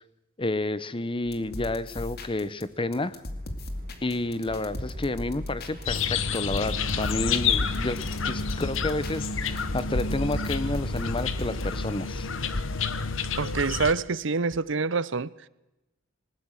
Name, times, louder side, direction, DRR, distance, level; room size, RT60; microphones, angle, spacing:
voice 1, 0.4-3.2 4.0-8.0 8.2-12.3, left 2 dB, 25° left, 0.9 m, -30 dB
sound 1, 1.2-2.6 2.9-11.8, left 1 dB, 55° left, 2.5 m, -38 dB
Mechanisms, 2.0-12.9, right 1 dB, 45° right, 2.5 m, -50 dB
sound 2, 5.9-13.9, left 5 dB, 80° left, 1.2 m, -29 dB
voice 2, 13.4-15.3, right 4 dB, 65° right, 0.7 m, -26 dB
20.5 x 20.0 x 6.6 m
head